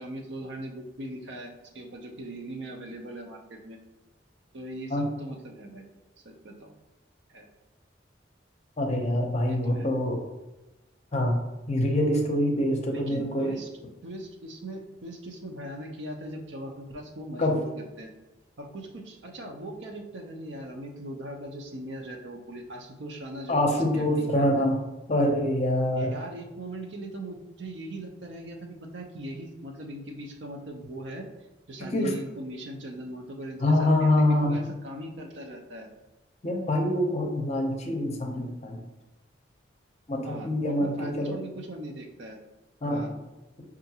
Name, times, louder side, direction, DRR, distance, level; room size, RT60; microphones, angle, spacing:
voice 1, 0.0-3.8 4.5-5.8 6.2-6.7 7.3-7.5 9.5-9.9 12.9-13.7 14.0-18.1 18.6-24.7 26.0-31.2 31.7-35.9 40.2-42.4 42.9-43.1, right 1 dB, 75° right, 2 dB, 0.6 m, -40 dB
voice 2, 8.8-10.2 11.1-11.4 11.7-13.6 17.4-17.6 23.5-24.8 25.1-26.1 31.8-32.1 33.6-34.6 36.4-38.8 40.1-41.3 42.8-43.1, left 1 dB, 35° left, 1 dB, 0.6 m, -25 dB
5.5 x 2.5 x 2.8 m, 1.1 s
head